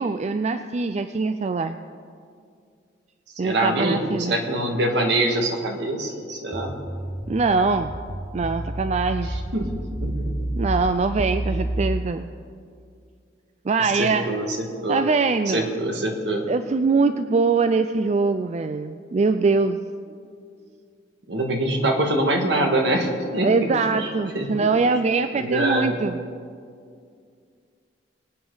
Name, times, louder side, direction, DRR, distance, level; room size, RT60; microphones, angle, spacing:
voice 1, 0.0-1.8 3.4-4.4 7.3-8.0 8.3-9.3 10.6-12.3 13.6-14.3 14.9-15.7 16.5-19.8 23.4-26.2, right 4 dB, 40° right, 9 dB, 0.4 m, -23 dB
voice 2, 3.4-6.8 9.3-9.4 9.7-10.5 11.5-11.8 13.8-15.0 15.5-16.5 21.3-23.7 24.0-24.7 25.3-25.9, right 1 dB, 70° right, 2 dB, 1.8 m, -25 dB
sound 1, 6.5-11.9, right 1 dB, 15° right, 0.8 m, -29 dB
24.0 x 9.0 x 4.0 m, 2.3 s
head